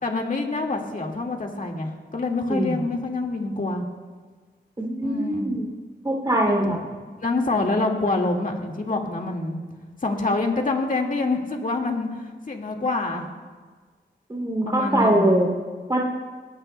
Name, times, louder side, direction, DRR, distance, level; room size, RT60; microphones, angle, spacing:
voice 1, 0.0-3.8 5.0-5.5 6.5-6.8 7.2-9.6 10.0-13.3 14.7-15.4, left 2 dB, 45° left, 1 dB, 1.9 m, -26 dB
voice 2, 2.5-2.8 4.8-5.7 6.0-6.8 14.3-15.5 15.9-16.0, right 1 dB, 20° right, -1 dB, 2.7 m, -22 dB
21.0 x 17.5 x 2.2 m, 1.4 s
wide cardioid pair, 95°, 19 cm